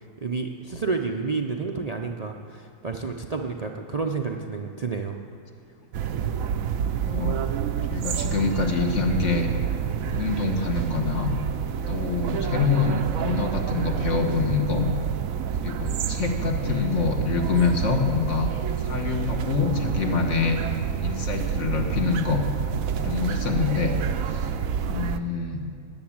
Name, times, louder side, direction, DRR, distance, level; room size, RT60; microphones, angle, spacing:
voice 1, 0.2-5.2, right 4 dB, 40° right, 2 dB, 0.6 m, -30 dB
sound 1, 5.9-25.2, right 8 dB, 75° right, 1.1 m, -28 dB
voice 2, 7.0-7.4 7.9-9.5 10.1-11.3 11.9-14.9 15.6-18.5 18.8-20.6 21.0-22.4 23.0-24.0 24.3-24.5 24.8-25.6, left 5 dB, 60° left, 3 dB, 1.6 m, -26 dB
19.0 x 7.1 x 8.7 m, 2.3 s
omnidirectional pair, 1.4 m